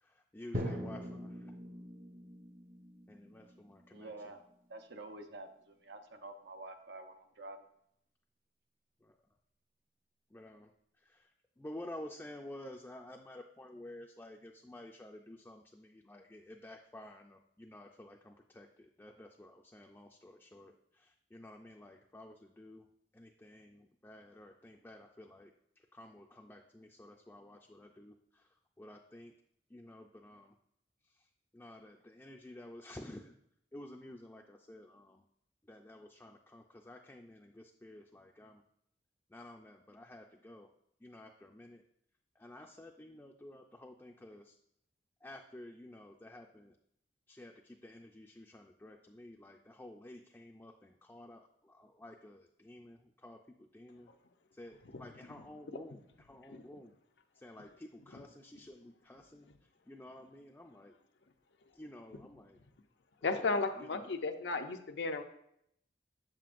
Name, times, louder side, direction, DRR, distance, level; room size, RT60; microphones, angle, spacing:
voice 1, 0.0-1.5 3.1-4.1 9.0-9.2 10.3-10.7 11.0-11.3 11.6-22.9 23.1-25.5 25.9-29.3 29.7-30.5 31.0-33.3 33.7-35.2 35.7-38.6 39.3-40.7 41.0-41.8 42.4-44.6 45.2-46.8 47.3-53.4 53.7-54.1 54.5-56.9 57.3-59.5 59.9-61.0 61.7-62.6 63.3-64.1, left 1 dB, 10° left, 1 dB, 0.4 m, -52 dB
Drum, 0.5-4.5, equal, 50° right, 0.8 m, -43 dB
voice 2, 3.9-4.4 4.7-7.6, right 2 dB, 80° right, 6 dB, 0.8 m, -48 dB
voice 3, 63.2-65.2, left 3 dB, 85° left, 5 dB, 0.6 m, -34 dB
7.7 x 7.5 x 2.5 m, 0.73 s
head